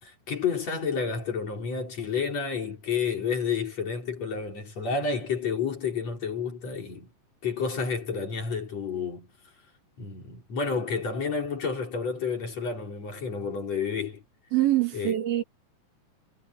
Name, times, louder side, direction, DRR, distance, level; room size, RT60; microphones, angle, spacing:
voice 1, 0.0-7.1 7.4-9.3 10.0-14.2 14.9-15.2, left 5 dB, 45° left, 5.0 m, -30 dB
voice 2, 14.5-15.4, right 14 dB, 85° right, 4.6 m, -24 dB
omnidirectional pair, 4.2 m